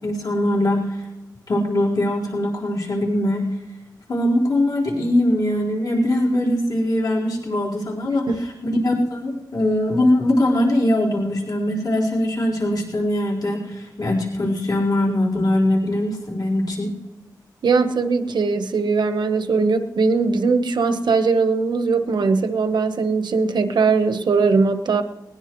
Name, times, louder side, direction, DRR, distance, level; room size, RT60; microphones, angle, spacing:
voice 1, 0.0-1.0 1.5-3.4 4.1-8.3 8.8-16.9, left 1 dB, 60° left, -3 dB, 4.4 m, -21 dB
voice 2, 8.0-8.4 17.6-25.0, right 4 dB, 90° right, 8 dB, 1.1 m, -20 dB
21.0 x 19.5 x 3.2 m, 1.0 s
wide cardioid pair, 125°, 7 cm